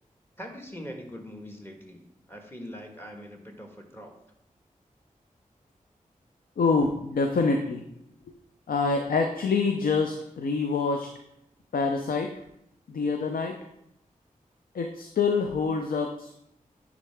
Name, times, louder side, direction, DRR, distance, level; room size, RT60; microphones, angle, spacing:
voice 1, 0.4-4.2, equal, 15° left, 3 dB, 1.4 m, -42 dB
voice 2, 6.6-7.8 8.3-8.4 8.7-11.1 11.7-12.3 12.9-13.6 14.7-16.3, left 4 dB, 85° left, 4 dB, 0.5 m, -26 dB
9.7 x 3.7 x 3.4 m, 0.79 s
cardioid pair, 45°, 15 cm